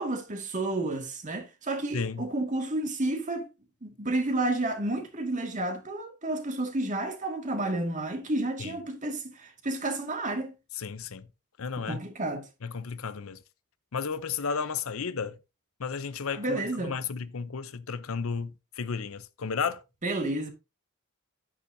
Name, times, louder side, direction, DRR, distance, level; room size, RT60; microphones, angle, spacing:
voice 1, 0.0-3.5 3.8-10.5 11.8-12.4 16.3-16.9 20.0-20.5, right 2 dB, 35° right, 2.1 m, -31 dB
voice 2, 1.9-2.3 8.6-8.8 10.7-11.3 11.6-12.0 12.6-13.4 13.9-15.4 15.8-19.8, left 5 dB, 70° left, 0.7 m, -33 dB
9.9 x 9.6 x 2.7 m
head